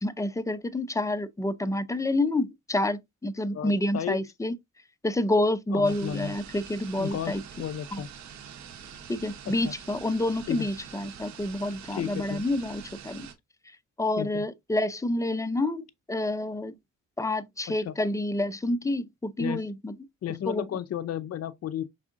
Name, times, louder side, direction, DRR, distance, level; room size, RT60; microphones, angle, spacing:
voice 1, 0.0-4.5 5.0-7.4 7.9-8.0 9.1-13.3 14.0-16.7 17.2-20.0 20.5-20.6, left 1 dB, 10° left, 0.4 m, -28 dB
voice 2, 3.5-4.2 5.7-6.3 7.0-8.1 9.5-9.7 10.5-10.7 11.9-12.5 14.2-14.5 17.8-17.9 19.4-19.6 20.2-21.8, left 10 dB, 55° left, 0.6 m, -33 dB
sound 1, 5.8-13.3, right 8 dB, 65° right, 0.9 m, -45 dB
4.7 x 3.6 x 2.5 m
cardioid pair, 90°, 30 cm